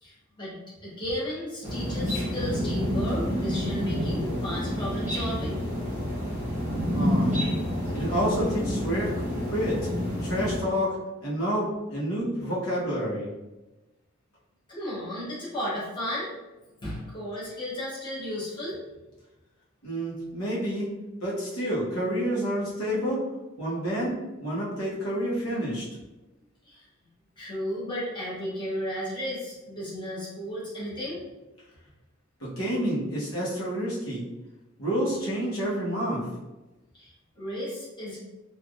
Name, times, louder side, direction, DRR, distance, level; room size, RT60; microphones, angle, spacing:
voice 1, 0.0-5.6 14.7-16.3 16.8-18.7 26.7-26.8 27.4-31.2 36.9-38.2, equal, 20° left, -8 dB, 1.0 m, -34 dB
sound 1, 1.6-10.6, equal, 10° right, 1.0 m, -28 dB
voice 2, 6.9-7.4 7.9-9.1 9.5-9.9 10.2-13.3 19.8-20.9 21.2-23.2 23.6-25.9 32.4-34.2 34.8-36.3, equal, 80° left, -7 dB, 1.0 m, -29 dB
3.3 x 2.5 x 2.4 m, 1.1 s
head